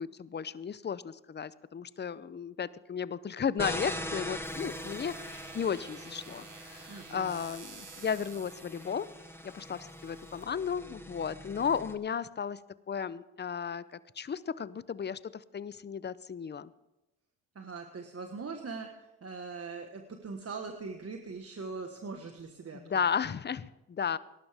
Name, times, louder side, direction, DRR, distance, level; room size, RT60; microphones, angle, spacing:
voice 1, 0.0-9.1 9.4-12.6 12.9-16.7 22.7-24.2, left 7 dB, 30° left, 17 dB, 0.6 m, -34 dB
sound 1, 3.6-11.9, left 1 dB, 5° left, 1.5 m, -42 dB
sound 2, 4.4-10.4, right 6 dB, 55° right, 2.0 m, -52 dB
voice 2, 6.9-7.4 17.5-23.0, right 4 dB, 40° right, 4 dB, 1.4 m, -41 dB
19.0 x 11.5 x 3.5 m, 0.95 s
supercardioid pair, 65°, 37 cm